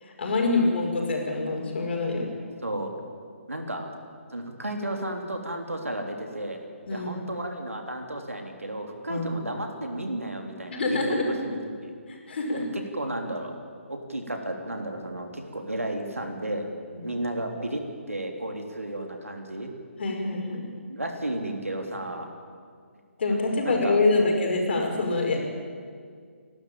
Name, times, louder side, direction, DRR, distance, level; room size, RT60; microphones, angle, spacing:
voice 1, 0.0-2.3 6.9-7.1 9.1-9.3 10.7-11.3 12.1-12.6 16.9-17.1 20.0-20.7 23.2-25.5, left 3 dB, 50° left, 1 dB, 5.5 m, -25 dB
voice 2, 2.6-3.1 3.5-3.9 4.3-6.6 6.9-11.9 12.5-13.6 13.9-16.7 17.0-17.8 18.1-19.7 20.8-22.3 23.3-24.0, right 1 dB, 90° right, 3 dB, 3.5 m, -33 dB
29.0 x 12.5 x 8.9 m, 2.1 s
figure-of-eight pair, 140°, 7 cm